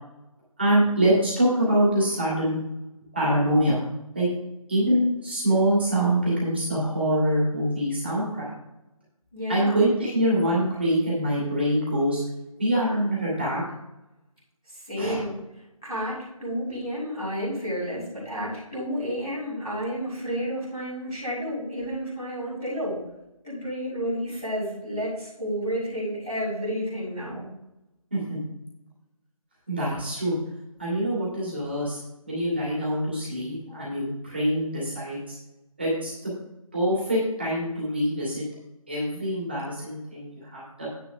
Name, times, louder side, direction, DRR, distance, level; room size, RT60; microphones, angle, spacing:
voice 1, 0.6-2.6 3.1-3.8 4.1-4.3 4.7-8.5 9.5-12.2 12.6-13.6 15.0-15.2 28.1-28.4 29.7-30.3 30.8-32.0 32.3-35.3 35.8-36.3 36.7-38.4 38.9-40.9, right 1 dB, 20° right, -7 dB, 2.6 m, -24 dB
voice 2, 9.3-9.8 14.9-15.3 15.8-16.1 16.4-22.9 23.4-27.4, equal, 5° left, -18 dB, 2.0 m, -31 dB
9.8 x 8.9 x 3.6 m, 0.91 s
figure-of-eight pair, 180°, 19 cm